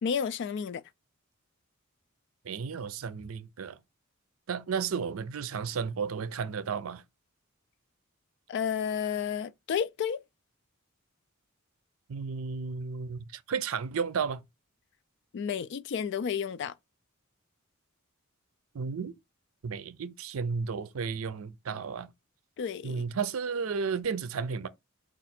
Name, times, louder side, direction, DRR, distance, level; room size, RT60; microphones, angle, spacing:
voice 1, 0.0-0.8 8.5-10.2 15.3-16.7 22.6-23.0, left 7 dB, 55° left, 0.3 m, -31 dB
voice 2, 2.4-3.8 4.5-7.0 12.1-14.4 18.7-19.1 19.6-22.1 22.8-24.7, right 5 dB, 80° right, 0.5 m, -33 dB
4.8 x 2.5 x 4.2 m
head